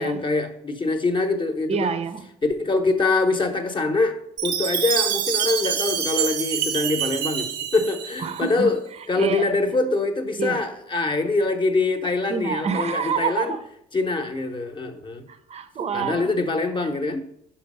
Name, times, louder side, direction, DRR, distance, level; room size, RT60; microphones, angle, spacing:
voice 1, 0.0-1.9 2.4-4.1 4.4-8.8 9.1-13.5 13.9-15.2 15.9-17.2, left 3 dB, 30° left, 0.8 m, -24 dB
voice 2, 1.7-2.3 8.2-8.7 9.2-9.5 10.4-10.7 12.3-13.6 15.3-16.3, right 6 dB, 40° right, 0.6 m, -27 dB
Chime, 4.4-8.5, right 9 dB, 85° right, 0.7 m, -26 dB
5.2 x 4.4 x 5.3 m
cardioid pair, 110°, 17 cm